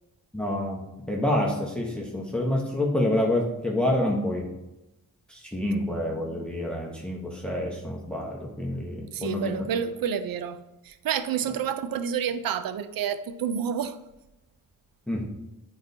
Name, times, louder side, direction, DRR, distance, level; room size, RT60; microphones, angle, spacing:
voice 1, 0.3-0.8 1.1-4.5 5.3-9.7 15.1-15.3, left 1 dB, 5° left, -1 dB, 1.0 m, -27 dB
voice 2, 9.1-10.6 10.9-14.0, right 8 dB, 90° right, 12 dB, 0.5 m, -29 dB
8.6 x 4.0 x 2.7 m, 0.97 s
cardioid pair, 95°, 34 cm